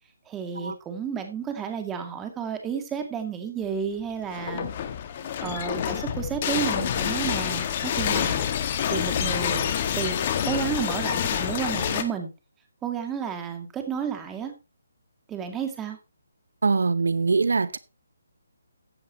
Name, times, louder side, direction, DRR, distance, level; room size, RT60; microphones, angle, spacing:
voice 1, 0.3-4.7 5.4-8.5 8.9-12.3 12.8-14.5 15.3-16.0, right 7 dB, 10° right, 2.3 m, -32 dB
sound 1, 4.2-12.0, left 9 dB, 35° left, 1.7 m, -27 dB
voice 2, 16.6-17.8, right 4 dB, 75° right, 0.7 m, -23 dB
14.5 x 9.5 x 3.0 m
hypercardioid pair, 155°, 0 cm